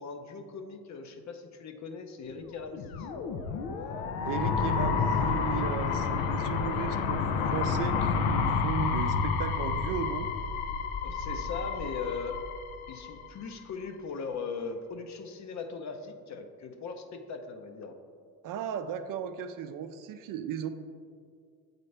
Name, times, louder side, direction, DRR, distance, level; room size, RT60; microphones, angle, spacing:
voice 1, 0.0-3.1 11.0-12.4 12.9-18.0, left 5 dB, 50° left, 6 dB, 0.7 m, -39 dB
sound 1, 2.6-13.5, left 5 dB, 90° left, 0.6 m, -30 dB
voice 2, 4.2-10.3 18.4-20.7, right 7 dB, 60° right, 9 dB, 0.5 m, -36 dB
7.6 x 4.1 x 3.3 m, 2.1 s
cardioid pair, 95°, 37 cm